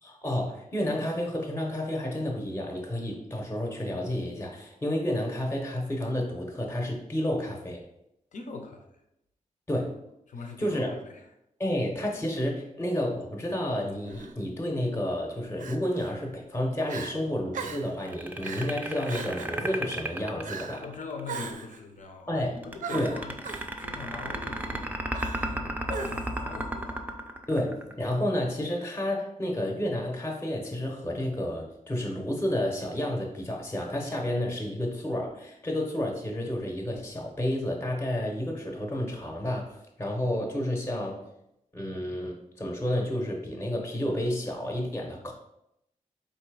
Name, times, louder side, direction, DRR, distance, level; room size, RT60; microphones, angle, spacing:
voice 1, 0.0-7.8 9.7-10.0 10.6-10.9 11.6-20.8 22.3-22.6 22.9-23.1 27.5-41.2 41.7-45.3, left 1 dB, 15° left, 1 dB, 0.7 m, -30 dB
voice 2, 8.3-8.9 10.3-11.3 20.8-23.4 23.8-27.2, left 4 dB, 65° left, 3 dB, 0.7 m, -42 dB
Crying sobbing, 14.1-14.3 15.6-16.1 16.5-16.6 16.9-17.1 17.5-17.9 18.4-18.7 19.1-19.6 20.4-20.8 21.3-21.8 22.8-23.7 25.1-25.6 25.9-26.4, right 5 dB, 75° right, 0.5 m, -38 dB
sound 1, 18.0-21.2 22.6-28.1, right 1 dB, 15° right, 0.4 m, -33 dB
4.0 x 2.7 x 4.7 m, 0.82 s
wide cardioid pair, 125°, 14 cm